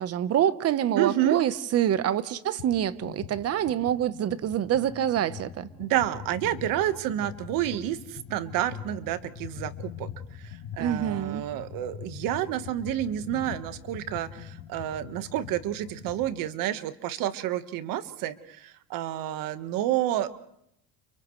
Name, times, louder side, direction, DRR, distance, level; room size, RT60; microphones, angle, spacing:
voice 1, 0.0-5.7 10.8-11.4, right 10 dB, 45° right, 1.1 m, -26 dB
voice 2, 1.0-1.4 5.8-10.1 10.4-20.3, right 12 dB, 65° right, 1.5 m, -29 dB
sound 1, 2.6-2.7 3.0-16.3, left 9 dB, 80° left, 3.5 m, -42 dB
30.0 x 30.0 x 3.2 m
supercardioid pair, 115°, 36 cm